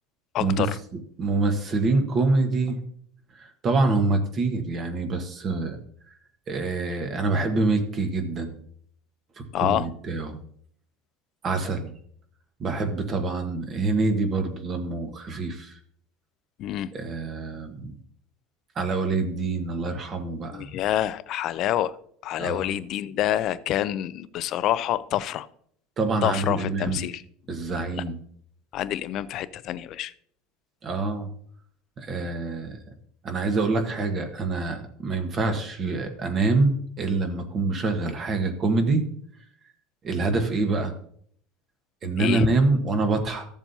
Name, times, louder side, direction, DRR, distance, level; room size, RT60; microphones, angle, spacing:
voice 1, 0.3-0.8 9.5-9.9 16.6-16.9 20.5-22.0 22.2-25.5 26.2-27.2 27.9-28.0 28.7-30.1 42.2-42.5, left 12 dB, 50° left, 16 dB, 0.5 m, -27 dB
voice 2, 1.2-2.8 3.4-5.8 6.5-8.6 9.6-10.4 11.4-11.9 12.6-15.8 16.9-17.9 18.7-20.7 22.4-22.8 26.0-27.0 27.5-28.2 30.8-31.3 32.0-32.8 33.2-39.0 40.0-40.9 42.0-43.5, right 3 dB, 35° right, 6 dB, 1.3 m, -26 dB
14.0 x 7.2 x 2.8 m, 0.63 s
supercardioid pair, 130°, 0 cm